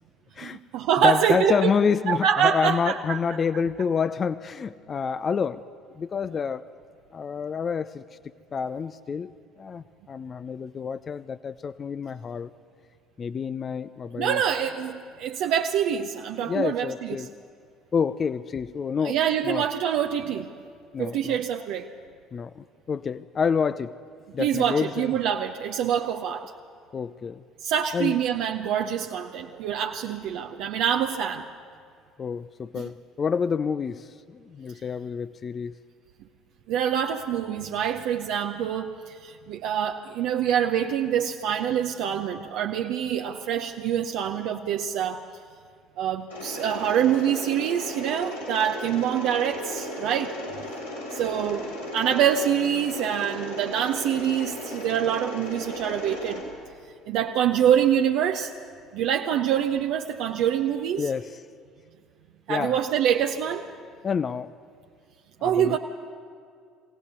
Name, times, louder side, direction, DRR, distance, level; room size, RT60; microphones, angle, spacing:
voice 1, 0.4-1.7 2.1-3.2 14.1-17.3 19.0-20.5 21.0-21.9 24.4-26.5 27.6-31.4 32.7-32.8 36.7-45.2 46.0-50.3 51.1-56.4 57.1-58.5 58.9-61.1 62.5-63.6 65.4-65.8, right 9 dB, 65° right, 3 dB, 0.7 m, -25 dB
voice 2, 1.0-5.6 6.0-6.7 7.1-8.0 8.5-9.3 9.6-12.5 13.2-14.4 16.5-17.3 17.9-19.2 19.4-19.7 20.9-21.4 22.3-24.0 24.3-25.1 26.9-27.4 27.9-28.2 32.2-35.7 61.0-61.4 62.5-62.8 64.0-64.5 65.4-65.8, left 6 dB, 40° left, 15 dB, 0.5 m, -28 dB
Mechanisms, 46.3-56.4, left 1 dB, 90° left, 4.8 m, -36 dB
23.0 x 17.0 x 8.2 m, 2.3 s
figure-of-eight pair, 55°, 0 cm